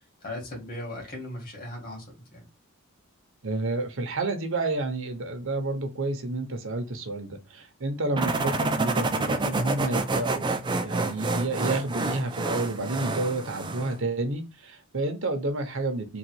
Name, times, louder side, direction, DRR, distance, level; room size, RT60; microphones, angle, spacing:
voice 1, 0.2-2.5, left 1 dB, 40° left, 2.1 m, -38 dB
voice 2, 3.4-16.2, right 2 dB, 60° right, 0.9 m, -30 dB
sound 1, 8.2-14.0, right 2 dB, 20° right, 0.5 m, -28 dB
3.9 x 2.4 x 4.5 m
head